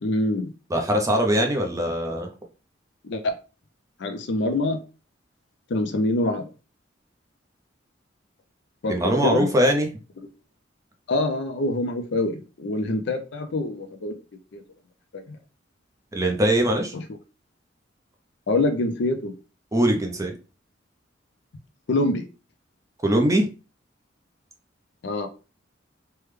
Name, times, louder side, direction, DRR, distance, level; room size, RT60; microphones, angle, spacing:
voice 1, 0.0-0.5 3.1-3.3 4.0-4.8 5.7-6.5 8.8-9.5 11.1-14.1 14.5-14.6 15.1-15.4 16.9-17.0 18.5-19.3 21.9-22.2 25.0-25.3, left 2 dB, 65° left, 0.5 m, -25 dB
voice 2, 0.7-2.3 8.9-9.9 16.1-16.9 19.7-20.3 23.0-23.5, equal, 15° right, 0.5 m, -21 dB
3.3 x 2.2 x 3.2 m
head